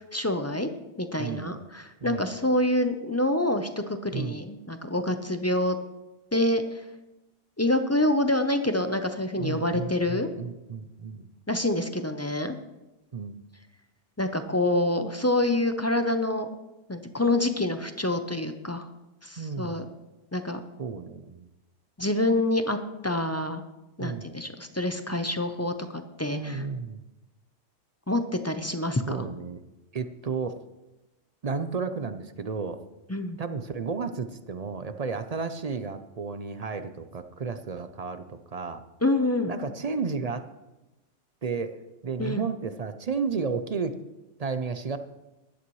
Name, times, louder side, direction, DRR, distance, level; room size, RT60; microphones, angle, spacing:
voice 1, 0.1-0.7 1.0-5.8 6.3-6.6 7.6-10.3 11.5-12.6 14.2-16.5 16.9-18.9 19.2-19.8 20.3-20.6 22.0-22.8 23.0-23.6 24.0-26.6 28.1-29.2 33.1-33.4 39.0-39.5 42.2-42.4, left 1 dB, 20° left, 8 dB, 0.5 m, -26 dB
voice 2, 1.2-1.7 2.0-2.3 4.1-4.4 9.4-11.3 13.1-13.4 19.4-19.9 20.8-21.5 24.0-24.3 26.3-27.0 29.1-29.6 29.9-30.6 31.4-32.8 33.4-38.8 39.5-40.5 41.4-41.8 42.0-43.9 44.4-45.0, right 5 dB, 45° right, 10 dB, 0.5 m, -32 dB
16.0 x 11.5 x 3.1 m, 1.0 s
omnidirectional pair, 1.2 m